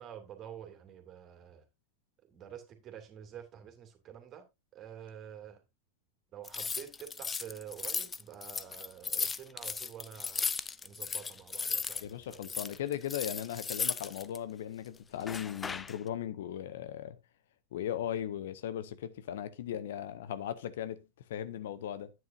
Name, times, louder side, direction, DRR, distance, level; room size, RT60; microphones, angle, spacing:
voice 1, 0.0-1.6 2.3-4.4 4.7-5.6 6.3-10.5 10.8-12.4, right 9 dB, 30° right, 2.5 m, -48 dB
sound 1, 6.4-12.0 12.3-14.4 15.2-16.0, left 5 dB, 15° left, 0.6 m, -36 dB
voice 2, 12.0-17.2 17.7-21.0 21.3-22.1, left 10 dB, 55° left, 0.8 m, -37 dB
10.5 x 9.3 x 2.6 m
figure-of-eight pair, 90°, 0 cm